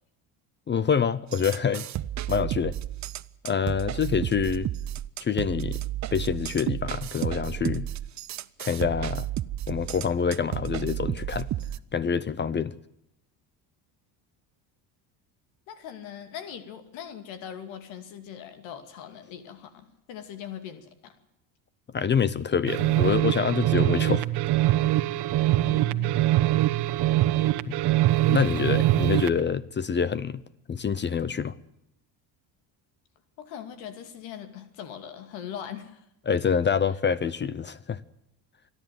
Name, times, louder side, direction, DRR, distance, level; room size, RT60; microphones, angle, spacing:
voice 1, 0.7-1.9 2.3-2.7 3.4-4.7 5.2-5.8 6.1-7.8 8.6-9.3 9.7-11.5 11.9-12.7 21.9-24.3 27.7-27.8 28.3-30.4 30.7-31.5 36.3-38.0, left 6 dB, 25° left, 0.7 m, -26 dB
sound 1, 1.3-11.8, right 12 dB, 40° right, 0.7 m, -32 dB
voice 2, 15.7-21.1 25.6-26.2 33.4-36.0, left 9 dB, 85° left, 2.6 m, -41 dB
sound 2, 22.6-29.4, right 15 dB, 60° right, 1.2 m, -23 dB
27.5 x 11.0 x 9.3 m
cardioid pair, 115°, 44 cm